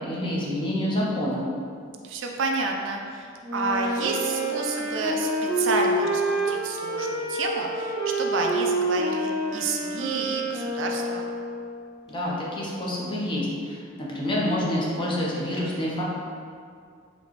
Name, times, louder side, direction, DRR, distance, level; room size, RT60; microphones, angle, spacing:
voice 1, 0.0-1.5 12.1-16.0, left 1 dB, 25° left, -5 dB, 0.7 m, -27 dB
voice 2, 2.0-5.3 5.6-11.3, right 3 dB, 65° right, 1 dB, 0.4 m, -30 dB
Wind instrument woodwind instrument, 3.4-11.8, right 1 dB, 20° right, 0.6 m, -28 dB
4.2 x 2.9 x 3.1 m, 2.3 s
head